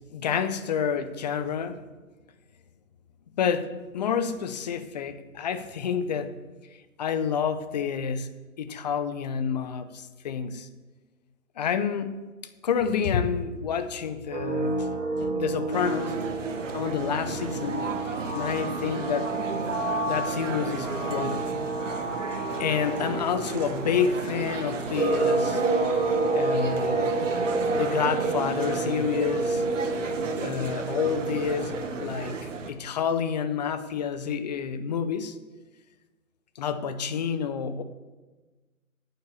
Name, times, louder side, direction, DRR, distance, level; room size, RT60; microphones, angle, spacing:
voice 1, 0.1-1.8 3.4-6.4 7.0-8.3 8.6-10.7 11.6-12.3 12.6-14.9 15.2-16.2 16.7-19.3 20.1-21.6 22.6-25.6 26.3-27.2 27.7-29.6 30.4-32.4 32.7-35.4 36.6-37.8, left 7 dB, 30° left, 11 dB, 0.6 m, -29 dB
sound 1, 14.3-31.9, right 3 dB, 90° right, 2.8 m, -29 dB
sound 2, 15.7-32.7, right 4 dB, 60° right, 1.5 m, -34 dB
9.3 x 7.9 x 7.0 m, 1.2 s
hypercardioid pair, 140°, 42 cm